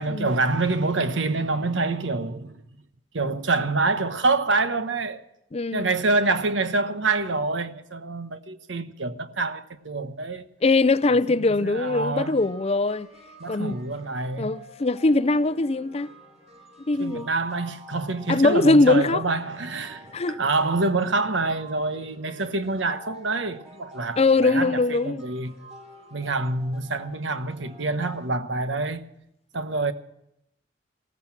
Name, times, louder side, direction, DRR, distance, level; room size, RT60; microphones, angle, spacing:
voice 1, 0.0-2.6 3.1-5.2 5.7-10.4 11.5-12.4 13.4-14.5 17.0-25.5 26.1-29.0 29.5-29.9, right 3 dB, 85° right, 1.2 m, -26 dB
voice 2, 5.5-5.9 10.6-13.1 13.5-13.8 14.4-16.1 16.9-17.3 18.3-19.2 20.1-20.4 24.2-25.2, left 3 dB, 35° left, 0.5 m, -21 dB
sound 1, 11.8-28.3, equal, 40° right, 4.6 m, -49 dB
16.5 x 14.5 x 5.9 m
head